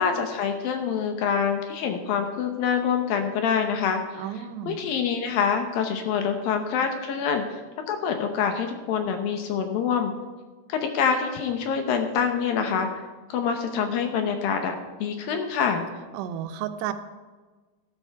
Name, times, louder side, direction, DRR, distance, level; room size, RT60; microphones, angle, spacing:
voice 1, 0.0-7.6 7.9-10.1 10.7-15.9, left 6 dB, 70° left, 5 dB, 2.4 m, -26 dB
voice 2, 4.2-4.8 16.1-16.9, right 10 dB, 90° right, 9 dB, 3.0 m, -32 dB
12.5 x 12.5 x 4.7 m, 1.3 s
omnidirectional pair, 4.8 m